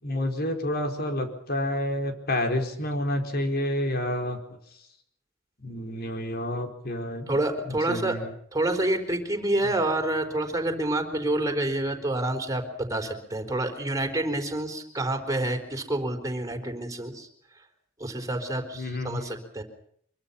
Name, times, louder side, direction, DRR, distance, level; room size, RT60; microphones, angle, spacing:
voice 1, 0.0-4.4 5.6-7.3 7.7-8.3 18.7-19.3, left 1 dB, 50° left, 5 dB, 4.8 m, -29 dB
voice 2, 7.3-8.2 8.5-17.3 18.0-19.6, right 1 dB, 15° right, 4 dB, 4.4 m, -28 dB
25.0 x 23.5 x 5.6 m, 0.68 s
head